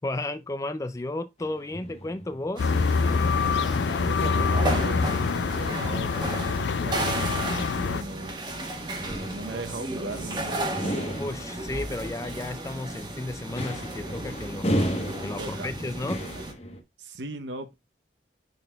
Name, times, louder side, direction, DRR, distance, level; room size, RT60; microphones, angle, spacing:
voice 1, 0.0-2.7 11.2-14.7 15.2-16.2, left 2 dB, 20° left, 0.4 m, -33 dB
sound 1, 1.4-16.8, equal, 35° left, 1.0 m, -36 dB
sound 2, 2.6-8.0, left 4 dB, 85° left, 0.4 m, -25 dB
sound 3, 2.6-16.5, right 1 dB, 25° right, 1.3 m, -34 dB
voice 2, 4.1-5.1 5.5-8.4 9.0-11.1 15.4-16.4 17.0-17.7, right 2 dB, 90° right, 0.8 m, -38 dB
10.5 x 4.0 x 2.2 m
head